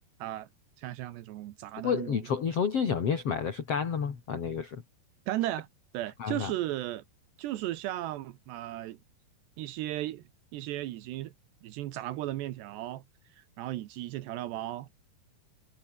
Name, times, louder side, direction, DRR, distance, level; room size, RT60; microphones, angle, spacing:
voice 1, 0.8-2.2 5.3-5.7 5.9-7.0 7.4-9.0 9.6-10.2 10.5-11.3 11.6-13.0 13.4-14.9, right 14 dB, 80° right, 3.3 m, -35 dB
voice 2, 1.8-4.8 6.2-6.5, left 6 dB, 40° left, 3.2 m, -30 dB
omnidirectional pair, 4.9 m